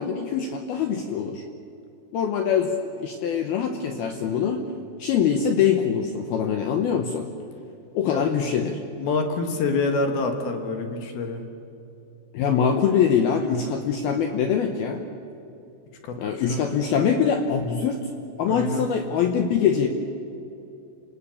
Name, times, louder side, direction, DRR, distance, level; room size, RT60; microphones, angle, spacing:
voice 1, 0.0-1.4 2.1-4.6 5.0-7.3 7.9-8.8 12.3-15.0 16.2-18.1 18.4-19.9, left 7 dB, 85° left, 5 dB, 2.1 m, -23 dB
voice 2, 9.0-11.4 16.0-16.8 18.5-18.8, left 3 dB, 60° left, 5 dB, 2.8 m, -27 dB
28.5 x 18.5 x 7.1 m, 2.8 s
omnidirectional pair, 6.0 m